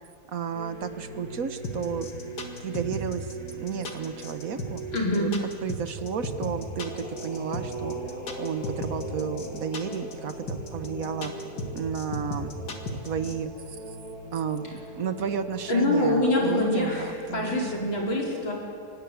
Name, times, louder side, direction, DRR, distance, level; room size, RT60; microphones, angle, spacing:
voice 1, 0.3-2.1 2.6-3.3 3.5-4.8 5.1-5.3 5.6-8.0 8.4-11.3 11.7-12.5 12.9-13.8 14.3-17.9, right 7 dB, 50° right, 10 dB, 1.2 m, -32 dB
Musica de ambiente, 0.5-18.0, right 2 dB, 5° right, 7.3 m, -40 dB
sound 1, 1.6-13.3, left 2 dB, 55° left, 2.5 m, -35 dB
voice 2, 4.9-5.3 15.7-18.5, left 1 dB, 70° left, -2 dB, 5.2 m, -25 dB
24.5 x 19.5 x 8.4 m, 2.5 s
omnidirectional pair, 2.2 m